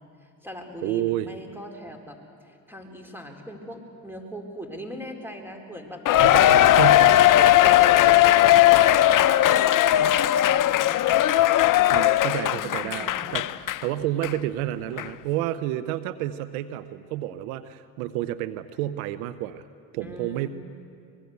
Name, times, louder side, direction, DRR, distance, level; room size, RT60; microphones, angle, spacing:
voice 1, 0.2-6.8 7.1-11.0 12.5-13.5 20.0-20.5, equal, 5° right, 4 dB, 4.3 m, -41 dB
voice 2, 0.8-1.3 6.2-7.1 11.9-19.6 19.9-20.5, right 14 dB, 80° right, 13 dB, 0.9 m, -30 dB
Cheering, 6.1-13.8 14.2-14.3 15.0-15.1, left 13 dB, 45° left, 0.7 m, -18 dB
24.5 x 21.0 x 8.2 m, 2.3 s
hypercardioid pair, 65°, 44 cm